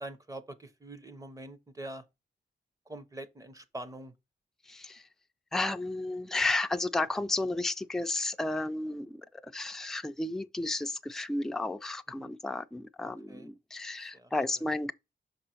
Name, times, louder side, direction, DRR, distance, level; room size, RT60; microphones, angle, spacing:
voice 1, 0.0-2.0 2.9-4.1 12.2-12.3 13.3-13.5 14.0-14.6, right 1 dB, 20° right, 0.7 m, -44 dB
voice 2, 4.7-5.0 5.5-14.9, left 2 dB, ahead, 0.3 m, -33 dB
6.1 x 3.8 x 4.3 m
wide cardioid pair, 165°, 19 cm